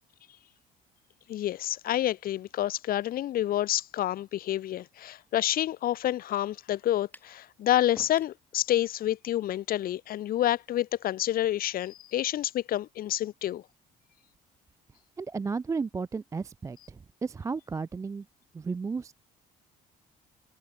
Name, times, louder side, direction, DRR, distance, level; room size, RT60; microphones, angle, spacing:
voice 1, 1.3-13.6, left 13 dB, 60° left, 0.9 m, -28 dB
sound 1, 7.1-7.4 8.0-8.4, left 2 dB, 10° left, 3.7 m, -49 dB
voice 2, 15.2-18.3 18.5-19.1, right 4 dB, 20° right, 0.4 m, -33 dB
open air
cardioid pair, 110°, 17 cm